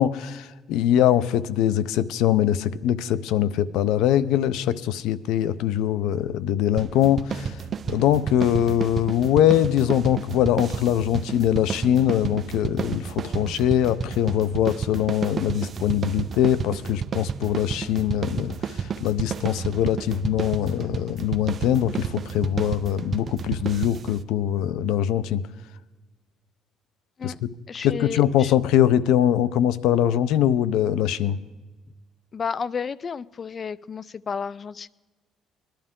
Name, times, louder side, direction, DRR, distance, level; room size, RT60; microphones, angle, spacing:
voice 1, 0.0-7.5 7.9-18.6 19.0-25.4 27.2-27.3 27.8-31.4, left 11 dB, 85° left, 16 dB, 0.5 m, -22 dB
sound 1, 6.8-24.2, right 6 dB, 35° right, 0.5 m, -31 dB
voice 2, 27.7-28.5 32.3-34.9, left 6 dB, 30° left, 20 dB, 0.3 m, -32 dB
20.5 x 11.5 x 3.7 m, 1.2 s
cardioid pair, 140°, 0 cm